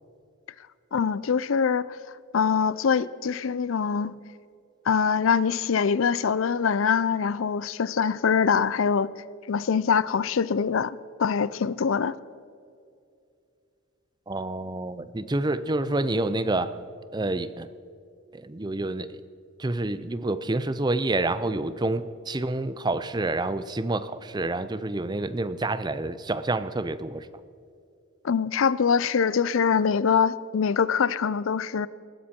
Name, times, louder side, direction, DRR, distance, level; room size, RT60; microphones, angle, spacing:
voice 1, 0.9-1.9 2.3-4.1 4.9-9.1 9.5-12.1 28.2-31.9, left 6 dB, 70° left, 0.4 m, -24 dB
voice 2, 14.3-16.7 17.1-17.7 18.3-19.2 19.6-27.3, right 2 dB, 20° right, 0.5 m, -28 dB
19.5 x 15.0 x 4.4 m
head